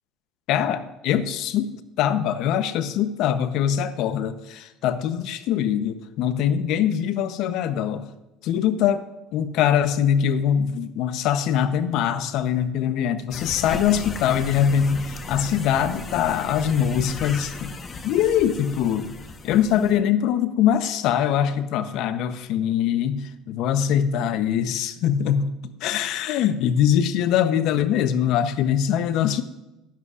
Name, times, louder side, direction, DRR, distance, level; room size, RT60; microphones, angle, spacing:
voice 1, 0.5-8.1 8.4-9.0 9.3-17.7 18.0-19.1 19.4-29.4, left 9 dB, 65° left, 12 dB, 0.8 m, -23 dB
sound 1, 13.3-20.0, left 3 dB, 35° left, 1.1 m, -36 dB
16.0 x 11.0 x 2.5 m, 0.96 s
supercardioid pair, 90°, 0 cm